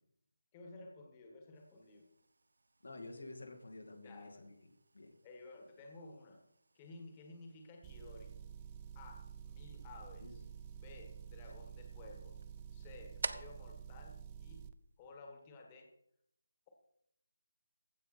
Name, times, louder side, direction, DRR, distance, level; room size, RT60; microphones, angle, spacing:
voice 1, 0.5-2.1 4.0-4.5 5.2-6.4 6.7-8.3 8.9-10.4 10.7-12.4 12.7-14.7 15.0-15.9, left 3 dB, 20° left, 2 dB, 1.5 m, -54 dB
sound 1, 1.5-15.2, right 3 dB, 75° right, 0.6 m, -52 dB
voice 2, 2.8-4.7 4.9-5.1 10.2-10.4, left 2 dB, 85° left, 2 dB, 2.3 m, -50 dB
Motor vehicle (road) / Engine, 7.8-14.7, right 9 dB, 20° right, 0.4 m, -50 dB
15.5 x 5.4 x 4.3 m, 0.73 s
figure-of-eight pair, 165°, 0 cm